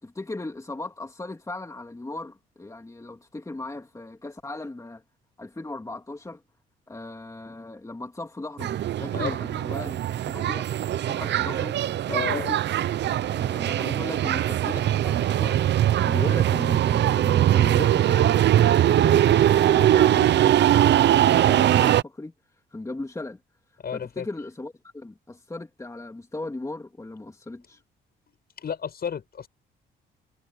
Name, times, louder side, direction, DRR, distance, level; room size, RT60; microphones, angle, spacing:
voice 1, 0.0-5.0 5.4-6.4 6.9-10.0 10.3-10.7 11.0-11.8 12.1-12.6 13.3-15.6 16.0-18.3 18.7-22.3 22.7-23.4 23.9-27.8, left 2 dB, 15° left, 2.9 m, -37 dB
sound 1, 8.6-22.0, right 12 dB, 60° right, 0.6 m, -21 dB
voice 2, 12.1-12.5 23.8-24.3 28.6-29.5, left 7 dB, 50° left, 7.4 m, -32 dB
cardioid pair, 90°, 20 cm